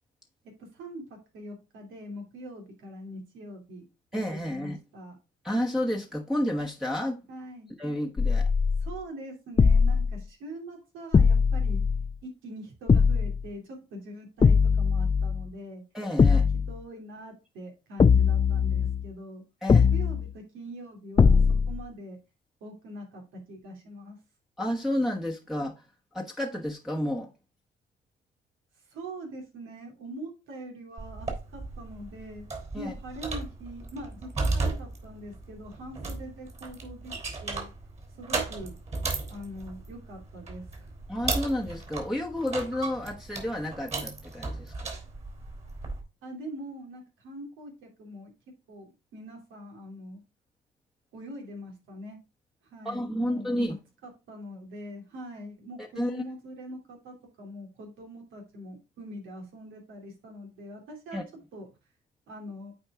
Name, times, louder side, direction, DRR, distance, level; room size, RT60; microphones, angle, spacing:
voice 1, 0.4-3.8 4.3-5.2 7.3-7.7 8.8-11.8 12.2-15.8 16.3-19.4 19.7-22.2 22.6-24.2 28.9-32.5 32.7-37.1 37.4-37.7 38.2-38.8 39.3-40.9 46.2-48.3 48.7-50.2 51.1-52.2 52.7-53.8 54.0-61.2 61.5-61.7 62.3-62.7, right 1 dB, 85° right, 2.8 m, -43 dB
voice 2, 4.1-4.8 5.4-7.2 7.8-8.5 15.9-16.4 19.6-19.9 24.6-25.8 26.1-27.3 32.7-32.9 41.1-44.9 52.8-53.8 55.8-56.1 61.1-61.2, left 1 dB, ahead, 1.1 m, -31 dB
sound 1, 8.2-8.9 9.6-10.2 11.1-12.2 12.9-13.5 14.4-15.5 16.2-16.8 18.0-19.1 19.7-20.3 21.2-21.8, left 5 dB, 25° left, 0.4 m, -21 dB
sound 2, 31.0-46.0, right 3 dB, 35° right, 3.4 m, -35 dB
8.8 x 4.6 x 3.6 m
cardioid pair, 90°, 20 cm